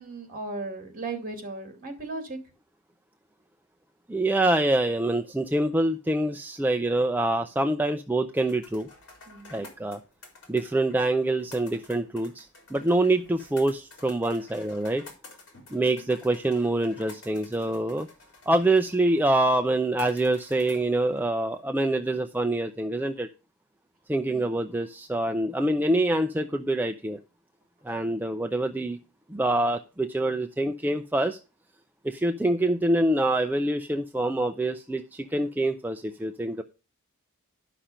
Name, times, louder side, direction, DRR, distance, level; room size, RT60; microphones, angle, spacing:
voice 1, 0.0-2.4 9.3-9.6 15.7-16.1 24.3-24.6, right 3 dB, 40° right, 5 dB, 2.6 m, -37 dB
voice 2, 4.1-8.9 9.5-10.0 10.5-15.0 15.7-18.1 18.5-23.3 24.1-27.2 27.8-29.0 29.3-31.4 32.0-36.6, right 1 dB, 10° right, 6 dB, 0.5 m, -25 dB
sound 1, 8.4-21.6, left 2 dB, 60° left, 4.0 m, -51 dB
11.0 x 5.9 x 5.0 m, 0.31 s
head